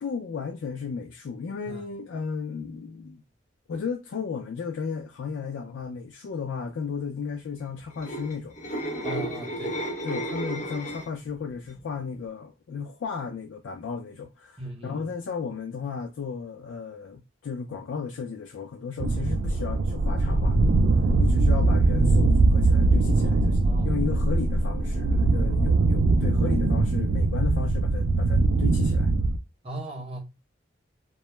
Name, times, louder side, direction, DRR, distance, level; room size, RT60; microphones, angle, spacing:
voice 1, 0.0-3.2 3.7-8.5 10.0-20.7 21.2-29.1, left 5 dB, 85° left, 0.3 m, -34 dB
sound 1, 7.8-11.3 11.6-12.0, right 1 dB, 40° left, 0.6 m, -32 dB
voice 2, 9.0-9.8 14.6-15.1 23.6-24.0 29.6-30.2, right 1 dB, 30° right, 0.7 m, -38 dB
sound 2, 19.0-29.4, right 2 dB, 65° right, 0.3 m, -21 dB
2.2 x 2.0 x 3.0 m
head